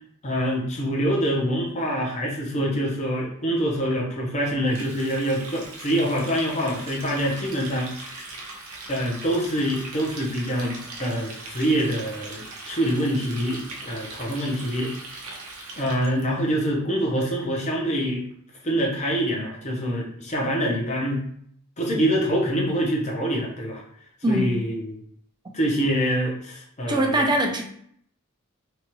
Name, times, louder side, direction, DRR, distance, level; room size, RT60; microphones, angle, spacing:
voice 1, 0.2-8.2 8.9-14.9 15.8-18.2 18.6-21.2 21.8-23.8 24.3-25.0 25.5-27.3, equal, 35° left, -2 dB, 0.8 m, -25 dB
Water tap faucet, 4.6-16.2, right 2 dB, 80° right, 0.7 m, -40 dB
voice 2, 26.9-27.6, right 1 dB, 20° right, 2 dB, 0.4 m, -22 dB
2.9 x 2.4 x 3.0 m, 0.65 s
head